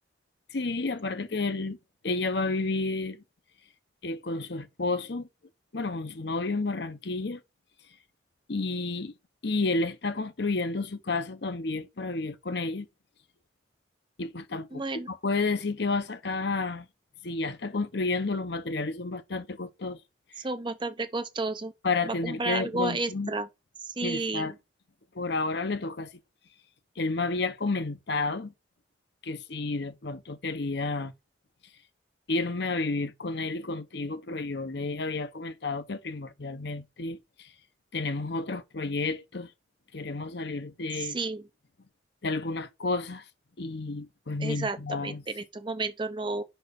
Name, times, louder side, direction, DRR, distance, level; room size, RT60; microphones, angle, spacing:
voice 1, 0.5-1.8 2.0-3.2 4.0-5.3 5.7-7.4 8.5-9.1 9.4-12.9 14.2-16.9 17.2-20.0 21.8-23.3 24.0-24.5 25.1-26.1 27.0-28.5 29.2-31.1 32.3-37.5 37.9-39.5 39.9-41.2 42.2-43.2 43.6-45.2, left 3 dB, 60° left, 0.8 m, -31 dB
voice 2, 14.7-15.1 20.4-21.7 22.0-23.5 23.8-24.5 41.0-41.5 44.4-46.4, right 3 dB, 25° right, 0.6 m, -32 dB
5.6 x 4.3 x 5.1 m
head